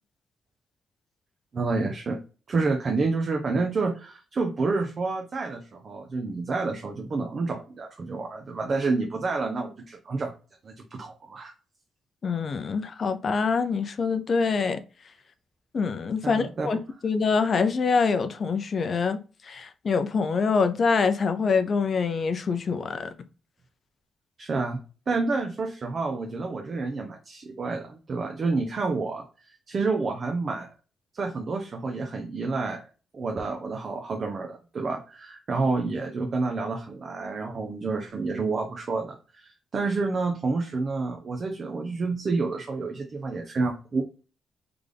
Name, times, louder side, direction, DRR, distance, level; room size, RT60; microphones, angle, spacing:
voice 1, 1.5-2.2 2.5-10.3 10.6-11.5 16.2-16.7 24.4-24.8 25.1-29.2 29.7-30.7 31.1-32.9 33.1-44.0, right 3 dB, 40° right, 0.7 m, -29 dB
voice 2, 12.2-14.8 15.7-16.8 17.0-19.2 19.4-23.1, left 5 dB, 40° left, 0.5 m, -25 dB
3.5 x 3.4 x 3.8 m
cardioid pair, 130°, 0 cm